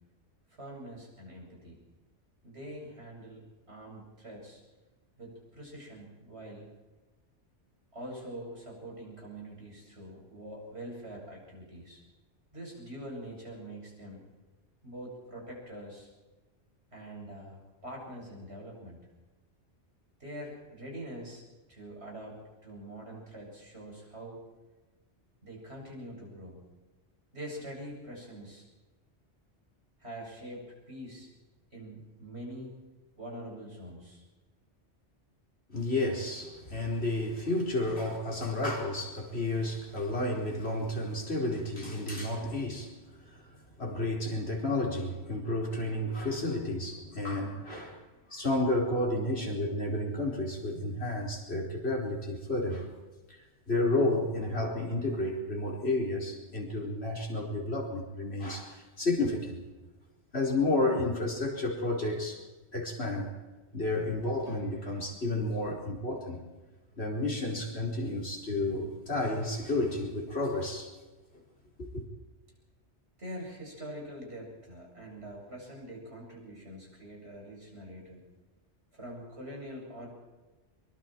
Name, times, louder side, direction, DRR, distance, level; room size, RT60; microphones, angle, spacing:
voice 1, 0.6-1.8 2.4-3.4 3.7-4.6 5.2-6.7 7.9-12.0 12.5-14.2 14.8-16.1 16.9-19.0 20.2-21.4 21.7-24.4 25.4-26.6 27.3-28.7 30.0-31.3 31.7-32.7 33.2-34.2 42.4-42.5 43.8-43.9 73.2-78.2 78.9-80.1, right 1 dB, 65° right, -2 dB, 8.2 m, -44 dB
voice 2, 35.7-42.9 43.2-43.5 43.8-48.0 48.3-52.9 53.7-59.6 60.3-62.4 62.7-63.3 63.7-66.5 67.0-70.9 71.8-72.0, left 2 dB, 65° left, 0 dB, 4.7 m, -31 dB
24.5 x 24.0 x 4.6 m, 1.2 s
omnidirectional pair, 1.2 m